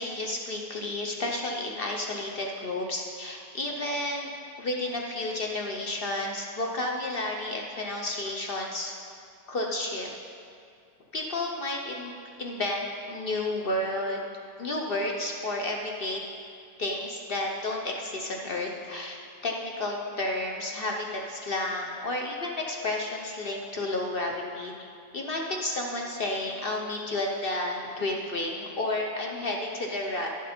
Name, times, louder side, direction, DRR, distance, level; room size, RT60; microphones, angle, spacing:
voice 1, 0.0-4.3 4.6-9.0 9.5-10.1 11.1-12.1 12.4-14.2 14.6-16.2 16.8-24.7 25.1-30.3, left 2 dB, 55° left, 0 dB, 0.6 m, -31 dB
11.0 x 7.5 x 4.3 m, 2.3 s
omnidirectional pair, 1.8 m